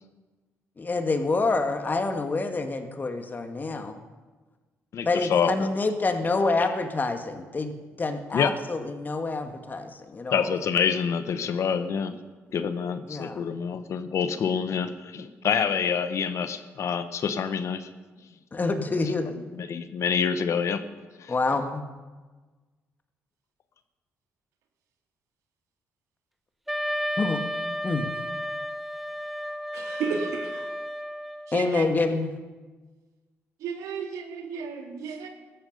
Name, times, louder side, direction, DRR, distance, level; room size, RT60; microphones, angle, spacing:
voice 1, 0.8-4.0 5.0-10.5 13.1-13.4 18.5-19.3 21.3-21.8 27.2-27.4 27.8-28.1 31.5-32.3, left 3 dB, 35° left, 6 dB, 1.8 m, -27 dB
voice 2, 4.9-5.7 8.3-8.5 10.3-12.1 12.5-17.9 19.5-20.8 21.2-21.3, left 7 dB, 60° left, 11 dB, 1.1 m, -27 dB
Wind instrument woodwind instrument, 26.7-31.6, equal, ahead, 0.8 m, -32 dB
voice 3, 29.7-30.7 31.5-31.9 33.6-35.3, right 5 dB, 85° right, 4 dB, 2.1 m, -33 dB
15.5 x 13.0 x 5.5 m, 1.3 s
supercardioid pair, 70°, 6 cm